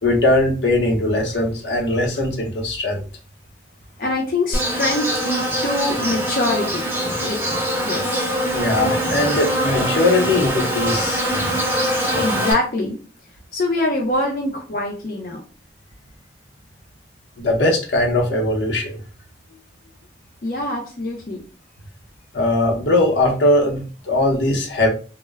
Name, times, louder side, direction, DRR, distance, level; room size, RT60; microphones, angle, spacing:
voice 1, 0.0-3.0 8.5-11.2 17.4-19.0 22.3-24.9, left 1 dB, 85° left, 0 dB, 0.8 m, -20 dB
voice 2, 4.0-6.9 7.2-8.3 12.1-13.0 13.5-15.4 20.4-21.4, left 2 dB, 50° left, -1 dB, 0.5 m, -24 dB
Insect, 4.5-12.5, equal, 10° right, 0.5 m, -23 dB
2.1 x 2.0 x 3.4 m, 0.36 s
head